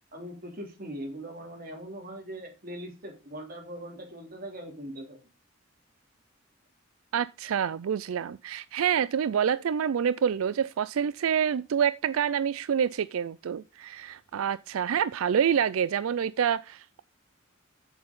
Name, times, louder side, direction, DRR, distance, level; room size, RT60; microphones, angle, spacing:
voice 1, 0.1-5.2, right 1 dB, 45° right, 3.3 m, -41 dB
voice 2, 7.1-17.0, right 8 dB, 90° right, 0.4 m, -27 dB
7.7 x 6.9 x 5.3 m
head